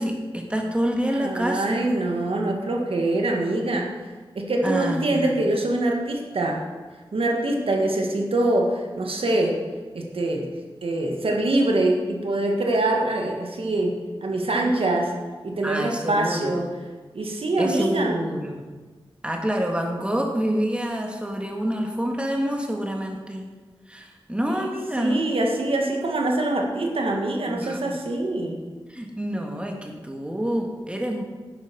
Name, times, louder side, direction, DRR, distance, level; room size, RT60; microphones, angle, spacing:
voice 1, 0.0-1.9 4.6-5.3 15.6-16.7 17.6-18.6 19.2-23.5 23.9-25.2 27.5-27.8 28.9-31.2, equal, 10° right, 2 dB, 1.8 m, -27 dB
voice 2, 1.1-3.9 4.4-6.6 7.1-9.6 9.9-10.5 10.8-15.1 15.4-16.7 17.1-18.3 24.6-28.6, right 2 dB, 80° right, 1 dB, 1.7 m, -24 dB
10.5 x 9.0 x 5.4 m, 1.3 s
wide cardioid pair, 65°, 9 cm